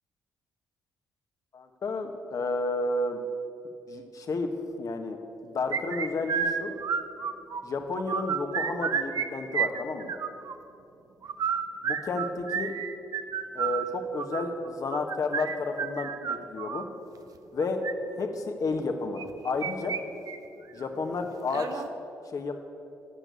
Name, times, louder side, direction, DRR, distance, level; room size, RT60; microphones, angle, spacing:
voice 1, 1.5-3.2 3.9-4.5 4.8-5.2 5.4-6.8 7.6-10.1 11.8-12.7 13.5-16.8 17.5-17.8 18.2-20.0 20.7-21.8 22.3-22.5, left 3 dB, 55° left, 5 dB, 1.5 m, -31 dB
sound 1, 5.7-7.6 7.9-9.3 9.5-10.5 11.2-16.9 17.6-17.9 19.2-20.0 20.3-20.4 20.8-20.9 21.5-21.9, right 7 dB, 55° right, 0.8 m, -30 dB
13.0 x 6.6 x 9.3 m, 2.7 s
hypercardioid pair, 50°, 7 cm